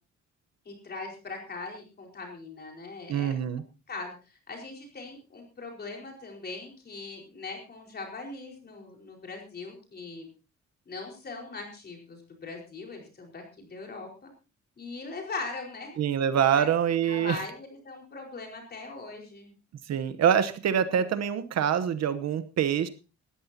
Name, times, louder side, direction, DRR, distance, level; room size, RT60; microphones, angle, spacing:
voice 1, 0.6-3.4 3.9-10.3 10.9-14.1 14.8-16.0 16.6-16.7 17.1-19.5, left 3 dB, 35° left, 1 dB, 4.7 m, -40 dB
voice 2, 3.1-3.6 16.0-17.4 19.9-22.9, right 8 dB, 65° right, 11 dB, 1.0 m, -25 dB
19.0 x 14.0 x 2.8 m, 0.32 s
wide cardioid pair, 180°, 29 cm